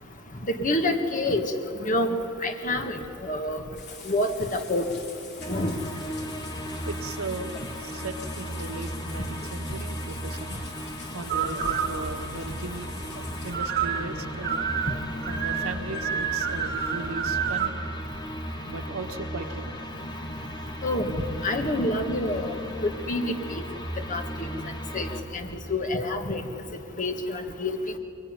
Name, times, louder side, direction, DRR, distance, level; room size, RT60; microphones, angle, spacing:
voice 1, 0.5-1.4 1.9-2.1 2.4-3.6 4.1-4.8 5.5-5.8 20.8-21.1 21.4-22.5 22.8-23.3 24.1-24.5 24.9-25.1 25.3-25.4 25.7-26.4 27.0-27.7, left 1 dB, 40° left, 5 dB, 1.9 m, -27 dB
sound 1, 3.7-13.5, left 5 dB, 55° left, 3.6 m, -46 dB
sound 2, 5.4-25.2, equal, 20° left, 1.9 m, -36 dB
voice 2, 6.9-10.6 11.1-12.9 13.4-14.8 15.2-17.8 18.7-19.7, right 2 dB, 90° right, 6 dB, 1.5 m, -37 dB
sound 3, 11.3-17.7, right 7 dB, 45° right, 2.4 m, -30 dB
23.0 x 22.5 x 9.9 m, 2.9 s
head